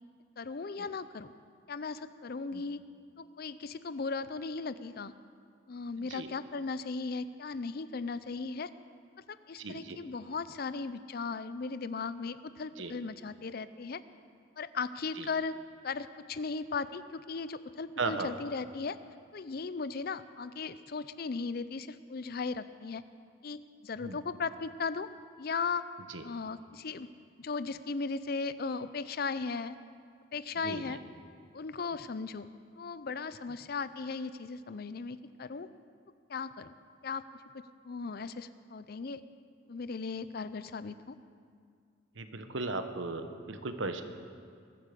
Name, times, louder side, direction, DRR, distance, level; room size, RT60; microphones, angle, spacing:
voice 1, 0.4-1.3 1.7-2.8 3.2-5.1 5.7-8.7 9.3-14.0 14.6-15.6 15.8-19.0 19.3-23.0 23.4-25.1 25.4-25.8 26.2-27.1 27.4-29.8 30.3-31.0 31.5-32.5 32.8-35.7 36.3-36.7 37.0-37.2 37.8-39.2 39.7-41.2, left 4 dB, 50° left, 14 dB, 0.5 m, -37 dB
voice 2, 9.6-10.0 12.8-12.9 15.2-15.3 18.0-18.3 24.0-24.2 26.1-26.2 30.6-31.0 42.2-44.0, right 3 dB, 75° right, 8 dB, 1.1 m, -36 dB
21.5 x 8.4 x 6.8 m, 2.2 s
head